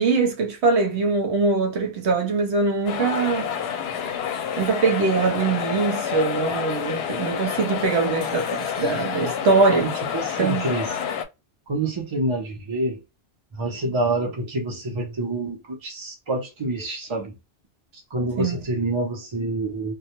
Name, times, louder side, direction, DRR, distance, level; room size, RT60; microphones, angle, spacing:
voice 1, 0.0-3.5 4.6-9.9 10.4-10.7 18.4-18.6, right 4 dB, 70° right, 1.0 m, -22 dB
sound 1, 2.9-11.2, left 8 dB, 70° left, 0.8 m, -28 dB
voice 2, 9.8-10.9 11.7-13.0 13.5-17.3 17.9-20.0, right 2 dB, 30° right, 0.6 m, -27 dB
2.2 x 2.2 x 2.8 m
omnidirectional pair, 1.2 m